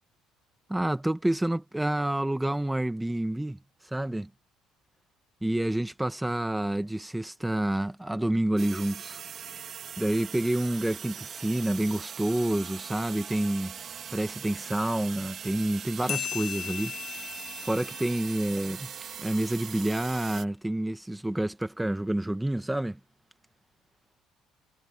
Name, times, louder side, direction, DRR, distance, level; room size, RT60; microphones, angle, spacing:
voice 1, 0.7-4.3 5.4-9.2 10.0-17.0 17.6-18.9 19.2-23.0, right 1 dB, 5° right, 1.6 m, -28 dB
sound 1, 8.6-20.4, right 8 dB, 50° right, 2.3 m, -41 dB
sound 2, 16.1-19.1, left 10 dB, 60° left, 0.5 m, -38 dB
cardioid pair, 95°, 0 cm